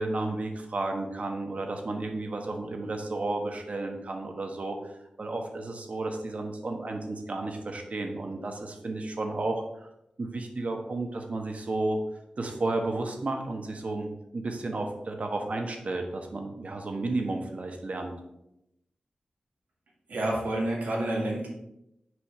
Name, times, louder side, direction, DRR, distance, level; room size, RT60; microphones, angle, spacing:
voice 1, 0.0-9.9 10.2-12.0 12.4-18.1, right 2 dB, 55° right, 3 dB, 1.2 m, -32 dB
voice 2, 20.1-21.5, right 1 dB, 90° right, -3 dB, 2.1 m, -29 dB
6.3 x 4.9 x 4.8 m, 0.84 s
wide cardioid pair, 65°, 3 cm